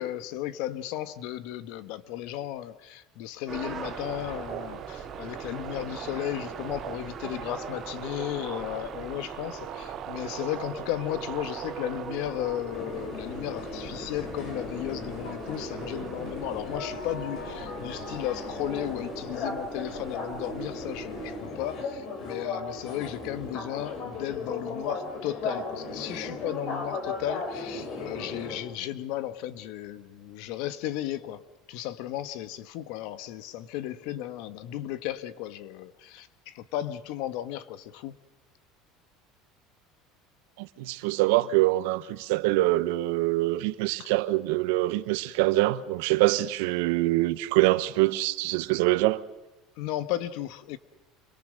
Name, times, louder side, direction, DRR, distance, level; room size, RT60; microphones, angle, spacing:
voice 1, 0.0-31.4 31.7-38.1 44.0-44.1 49.8-50.8, left 13 dB, 65° left, 1.4 m, -35 dB
sound 1, 3.5-21.4, right 5 dB, 20° right, 3.7 m, -41 dB
sound 2, 3.8-12.0, right 12 dB, 45° right, 0.9 m, -41 dB
sound 3, 12.7-28.6, left 3 dB, 45° left, 4.8 m, -36 dB
voice 2, 40.6-49.2, right 18 dB, 85° right, 1.1 m, -24 dB
27.0 x 22.0 x 6.6 m
cardioid pair, 160°, 0 cm